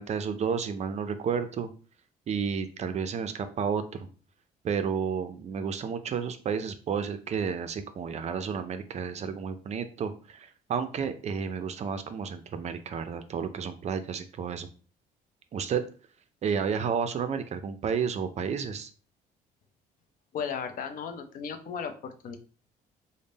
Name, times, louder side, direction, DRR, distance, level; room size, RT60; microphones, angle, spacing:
voice 1, 0.0-1.7 2.3-4.1 4.6-14.7 15.5-15.8 16.4-18.9, right 6 dB, 40° right, 9 dB, 0.4 m, -31 dB
voice 2, 20.3-22.4, left 6 dB, 55° left, 7 dB, 0.6 m, -35 dB
3.5 x 2.1 x 3.9 m, 0.38 s
cardioid pair, 110°, 17 cm